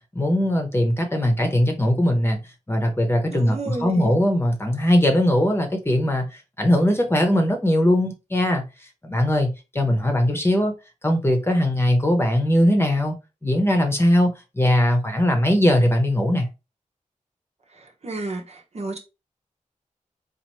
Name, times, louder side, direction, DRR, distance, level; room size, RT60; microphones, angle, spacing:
voice 1, 0.1-2.4 2.7-6.3 6.6-8.6 9.0-9.5 9.7-10.7 11.0-13.1 13.4-16.5, left 1 dB, 20° left, 1.0 m, -20 dB
voice 2, 3.3-4.2 18.0-19.0, right 2 dB, 55° right, 1.0 m, -31 dB
4.2 x 2.7 x 3.0 m
wide cardioid pair, 75°, 13 cm